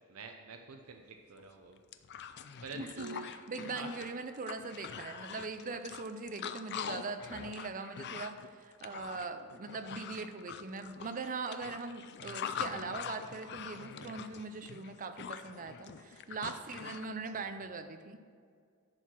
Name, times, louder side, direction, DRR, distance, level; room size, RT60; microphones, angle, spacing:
voice 1, 0.1-1.8 2.6-3.3 3.6-3.9 16.3-16.5 17.1-17.6, right 4 dB, 85° right, 4 dB, 0.7 m, -48 dB
sound 1, 1.4-1.5 1.8-17.1, left 7 dB, 55° left, 0.4 m, -44 dB
voice 2, 2.8-18.2, right 4 dB, 40° right, 9 dB, 0.6 m, -41 dB
10.5 x 4.6 x 6.2 m, 2.1 s
head